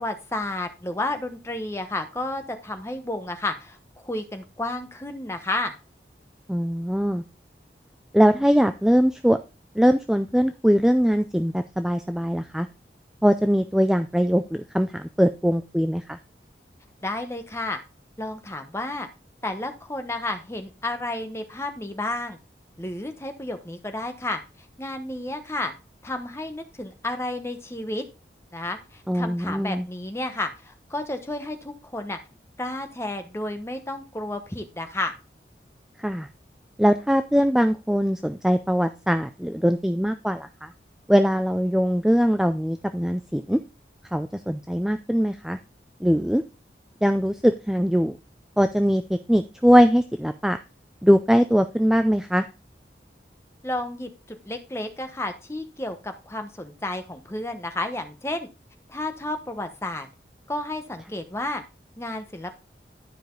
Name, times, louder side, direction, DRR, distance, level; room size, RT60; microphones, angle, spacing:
voice 1, 0.0-5.8 17.0-17.8 18.2-19.1 19.4-22.4 22.8-24.4 24.8-25.7 26.0-28.0 28.5-32.2 32.6-35.1 53.6-58.5 58.9-60.1 60.5-61.6 62.0-62.5, left 2 dB, 15° left, 6 dB, 1.0 m, -31 dB
voice 2, 6.5-7.2 8.1-9.4 9.7-12.7 13.2-16.2 29.1-29.9 36.0-36.3 36.8-40.7 41.1-43.6 44.1-45.6 46.0-46.4 47.0-48.2 48.6-50.6 51.0-52.5, equal, 5° right, 8 dB, 0.3 m, -21 dB
11.5 x 5.1 x 3.8 m, 0.29 s
head